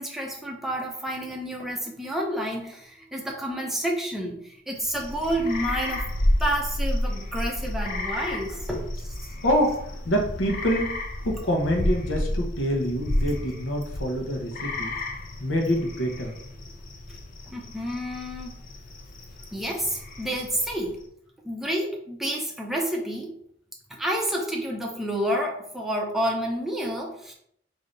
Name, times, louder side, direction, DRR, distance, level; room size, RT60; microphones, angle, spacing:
voice 1, 0.0-6.1 6.4-9.1 17.1-17.2 17.5-18.6 19.5-21.0 21.4-23.3 23.9-27.3, right 1 dB, ahead, -1 dB, 0.6 m, -29 dB
sound 1, 4.8-21.0, left 1 dB, 45° left, 0.5 m, -31 dB
voice 2, 9.3-14.9 15.4-16.4, equal, 85° left, 1 dB, 0.9 m, -26 dB
3.3 x 2.7 x 3.8 m, 0.69 s
head